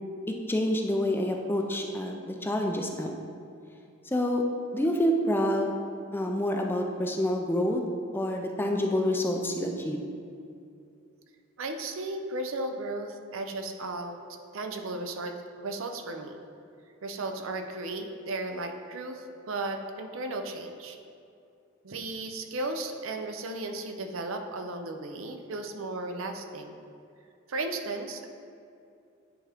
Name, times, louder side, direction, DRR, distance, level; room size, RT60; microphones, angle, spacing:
voice 1, 0.3-3.1 4.1-4.4 4.7-5.8 6.1-7.8 8.1-10.1, left 1 dB, 10° left, 2 dB, 0.4 m, -27 dB
voice 2, 11.6-14.2 14.5-16.4 17.0-21.0 21.8-26.8 27.5-28.3, right 2 dB, 65° right, 5 dB, 0.6 m, -35 dB
9.9 x 3.6 x 3.5 m, 2.5 s
head